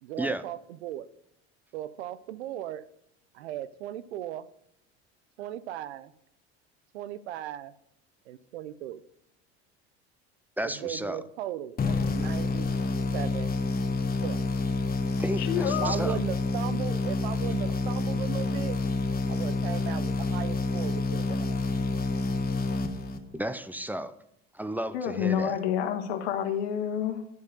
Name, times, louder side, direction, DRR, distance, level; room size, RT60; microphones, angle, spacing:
voice 1, 0.0-1.1 1.7-2.8 3.3-4.4 5.4-6.1 6.9-7.7 8.3-9.0 10.8-12.8 13.1-13.5 14.2-14.5 15.8-18.8 19.3-21.7, right 12 dB, 90° right, 16 dB, 0.6 m, -37 dB
voice 2, 10.6-11.2 15.2-16.2 23.3-24.2 24.5-25.6, right 1 dB, 5° right, 13 dB, 0.6 m, -33 dB
sound 1, 11.8-23.5, left 3 dB, 30° left, 1.2 m, -28 dB
voice 3, 15.4-15.9 24.9-27.2, left 9 dB, 80° left, 6 dB, 1.4 m, -29 dB
11.0 x 4.8 x 5.2 m, 0.78 s
hypercardioid pair, 85°, 32 cm